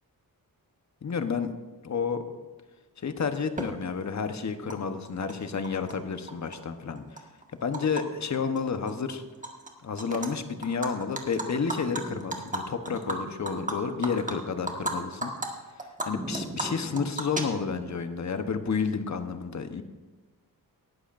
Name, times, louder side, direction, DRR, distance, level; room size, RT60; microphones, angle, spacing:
voice 1, 1.0-1.5 1.8-2.2 3.0-7.2 7.6-9.2 9.8-15.3 16.0-19.8, left 5 dB, 50° left, 8 dB, 1.0 m, -30 dB
Animal, 3.6-3.7 4.7-4.8 5.0-5.9 6.3-8.0 8.3-8.6 8.9-9.7 10.0-10.3 10.6-14.9 15.2-15.5 15.8-17.9, right 2 dB, 20° right, 1.7 m, -34 dB
19.0 x 11.5 x 2.6 m, 1.2 s
wide cardioid pair, 95°, 35 cm